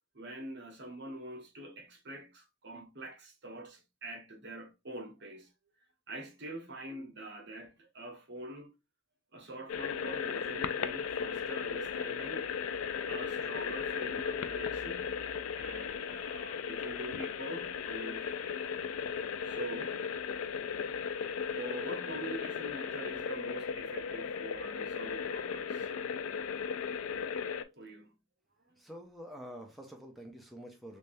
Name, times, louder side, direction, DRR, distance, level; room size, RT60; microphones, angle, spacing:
voice 1, 0.1-5.5 6.1-8.8 9.3-12.5 13.1-15.2 15.6-18.6 19.4-20.0 21.5-25.9 27.6-28.2, right 1 dB, 55° right, 1.0 m, -45 dB
sound 1, 9.7-27.6, left 6 dB, 70° left, 0.3 m, -36 dB
voice 2, 28.8-31.0, equal, ahead, 0.6 m, -47 dB
3.4 x 3.3 x 2.6 m
head